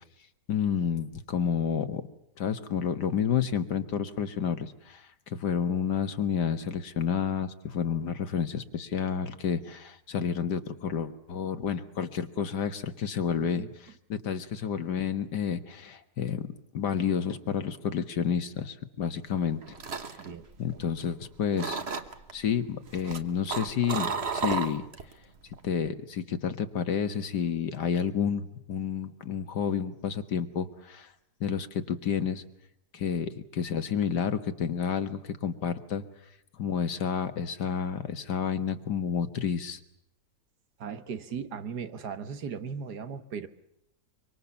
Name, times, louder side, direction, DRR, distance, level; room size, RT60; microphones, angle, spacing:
voice 1, 0.5-2.0 2.4-5.0 5.3-13.7 14.1-16.5 16.7-19.8 20.6-21.8 22.3-24.9 25.6-31.1 31.4-32.4 32.9-36.0 36.6-39.8, left 7 dB, 80° left, 9 dB, 2.1 m, -30 dB
voice 2, 13.4-13.7 20.2-20.5 40.8-43.5, right 6 dB, 70° right, 10 dB, 1.8 m, -37 dB
sound 1, 19.4-21.2 21.6-22.3 22.9-25.1 25.4-25.8, right 5 dB, 40° right, 1.5 m, -33 dB
25.0 x 24.5 x 7.1 m, 0.81 s
omnidirectional pair, 1.8 m